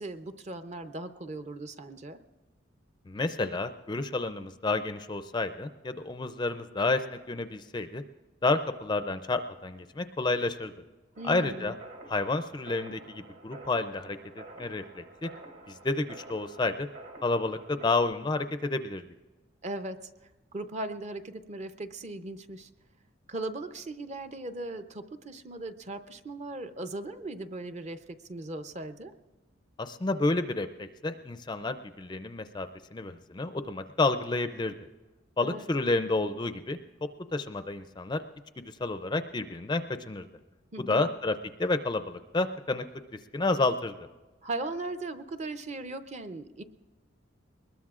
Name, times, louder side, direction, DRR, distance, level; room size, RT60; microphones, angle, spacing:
voice 1, 0.0-2.2 11.2-11.7 19.6-20.0 20.5-22.7 23.3-29.1 35.4-35.7 40.7-41.1 44.4-46.6, right 2 dB, 35° right, 9 dB, 0.6 m, -38 dB
voice 2, 3.1-8.0 8.4-10.7 11.2-11.7 12.1-15.3 15.7-16.9 17.2-19.0 29.8-34.7 35.4-36.8 37.3-38.2 38.8-40.3 40.8-41.3 41.6-42.8 43.3-44.1, left 3 dB, 20° left, 10 dB, 0.4 m, -30 dB
sound 1, 11.2-18.0, right 2 dB, 65° right, 3.2 m, -49 dB
22.5 x 20.5 x 2.4 m, 1.2 s
head